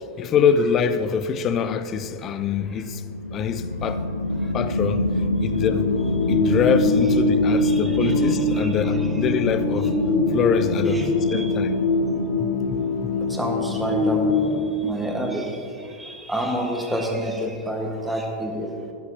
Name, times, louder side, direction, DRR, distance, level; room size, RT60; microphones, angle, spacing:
voice 1, 0.2-3.0 3.3-4.0 4.5-5.1 5.4-5.9 6.3-9.9 10.3-11.8 12.4-13.1, left 7 dB, 30° left, 0.6 m, -24 dB
sound 1, 3.1-15.2, left 1 dB, 85° left, 0.4 m, -27 dB
sound 2, 5.5-14.6, left 2 dB, 50° left, 1.4 m, -23 dB
voice 2, 7.6-9.1 10.9-11.5 13.3-14.2 14.8-18.7, equal, 5° right, 1.5 m, -29 dB
14.5 x 11.5 x 2.9 m
figure-of-eight pair, 90°, 0 cm